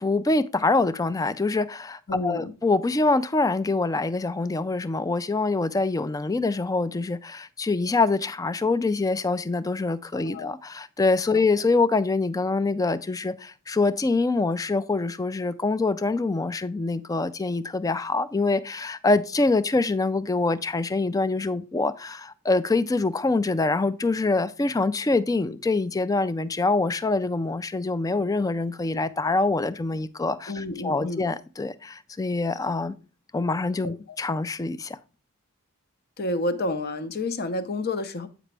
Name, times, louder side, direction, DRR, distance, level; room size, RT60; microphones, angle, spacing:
voice 1, 0.0-32.9 33.3-35.0, left 3 dB, 15° left, 0.3 m, -25 dB
voice 2, 2.1-2.5 10.1-10.5 11.3-11.4 30.5-31.2 33.8-33.9 36.2-38.3, left 2 dB, 45° left, 0.7 m, -30 dB
8.4 x 5.0 x 3.3 m
head